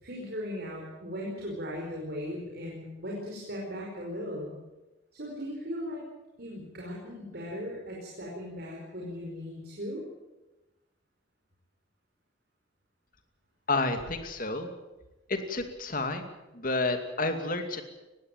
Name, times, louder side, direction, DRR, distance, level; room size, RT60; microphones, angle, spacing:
voice 1, 0.0-4.5 5.1-6.0 6.4-10.0, equal, 55° right, -2 dB, 5.0 m, -38 dB
voice 2, 13.7-14.7 15.3-16.3 16.5-17.8, left 2 dB, 45° left, 6 dB, 2.5 m, -30 dB
20.5 x 16.0 x 9.0 m, 1.0 s
head